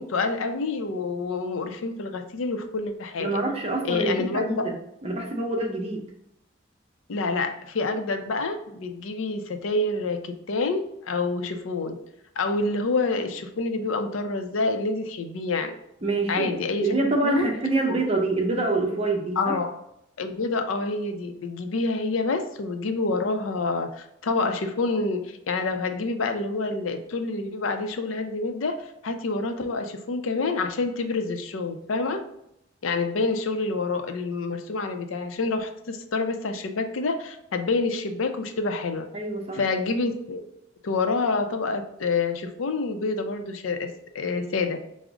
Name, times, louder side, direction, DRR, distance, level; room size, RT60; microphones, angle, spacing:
voice 1, 0.0-3.4 3.8-4.7 7.1-12.0 12.4-15.7 16.3-17.5 17.9-18.0 19.4-19.7 20.2-32.2 32.8-39.1 39.5-40.4 40.8-44.8, left 3 dB, 90° left, 7 dB, 0.5 m, -27 dB
voice 2, 3.2-4.8 5.0-6.1 16.0-19.5 39.1-39.6, right 2 dB, 30° right, 1 dB, 0.6 m, -26 dB
4.9 x 2.0 x 3.5 m, 0.79 s
head